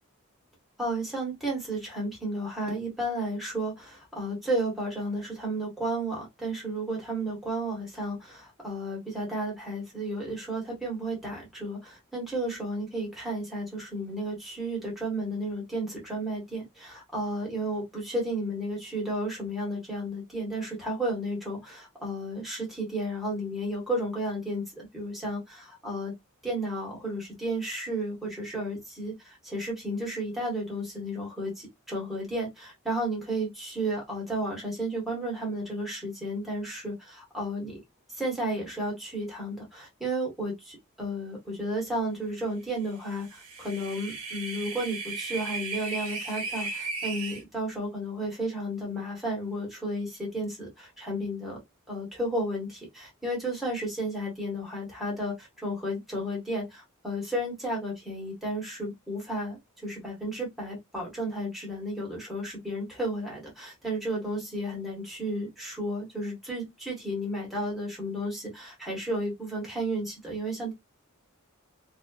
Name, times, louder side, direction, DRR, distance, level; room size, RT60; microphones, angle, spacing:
voice 1, 0.8-26.1 26.4-37.8 38.1-51.6 51.9-70.7, right 1 dB, ahead, 1.2 m, -33 dB
sound 1, 43.1-47.4, right 4 dB, 80° right, 0.7 m, -36 dB
2.4 x 2.3 x 2.3 m
head